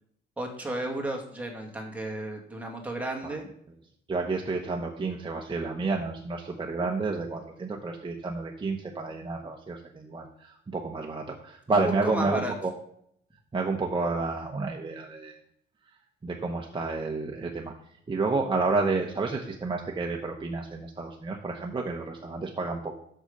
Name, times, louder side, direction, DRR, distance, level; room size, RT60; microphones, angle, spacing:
voice 1, 0.4-3.5 11.7-12.5, right 1 dB, 5° right, 0 dB, 2.2 m, -33 dB
voice 2, 4.1-12.7 13.5-15.4 16.2-17.7 18.1-23.0, right 3 dB, 25° right, 1 dB, 1.0 m, -30 dB
6.7 x 6.1 x 5.2 m, 0.69 s
cardioid pair, 90°, 20 cm